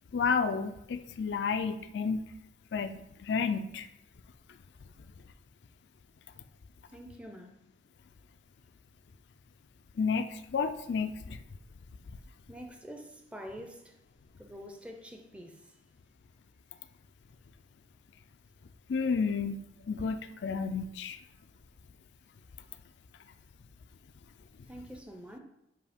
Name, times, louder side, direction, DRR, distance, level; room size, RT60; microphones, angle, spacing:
voice 1, 0.1-2.2 2.7-3.9 10.0-11.4 18.9-19.6 19.9-21.2, left 5 dB, 80° left, 9 dB, 0.4 m, -31 dB
voice 2, 6.9-7.6 12.5-14.0 14.4-15.6 24.7-25.4, equal, 5° right, 3 dB, 0.5 m, -46 dB
7.5 x 2.7 x 5.0 m, 0.83 s
head